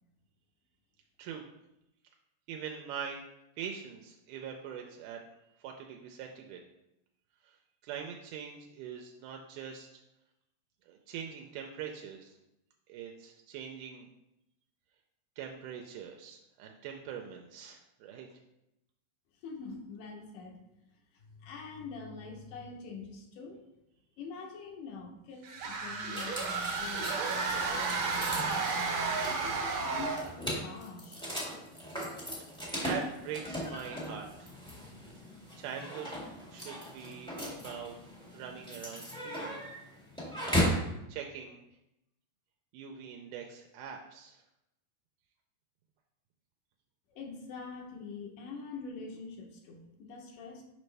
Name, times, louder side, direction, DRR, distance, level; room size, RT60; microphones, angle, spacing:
voice 1, 2.5-3.2 3.6-5.2 5.6-6.6 7.4-7.6 7.8-9.9 10.9-12.4 12.9-14.1 15.4-18.3 32.4-32.5 32.8-34.5 35.6-36.1 36.5-38.0 38.3-39.6 40.4-40.6 41.1-41.6 42.7-44.4, right 7 dB, 85° right, 2 dB, 2.1 m, -43 dB
voice 2, 19.4-20.6 21.1-23.6 24.2-31.2 47.1-50.6, left 4 dB, 80° left, 2 dB, 2.4 m, -45 dB
sound 1, 25.4-30.4, right 4 dB, 70° right, 1.9 m, -32 dB
sound 2, 26.1-40.9, equal, 5° left, 0.4 m, -37 dB
6.6 x 5.2 x 3.3 m, 0.87 s
omnidirectional pair, 3.7 m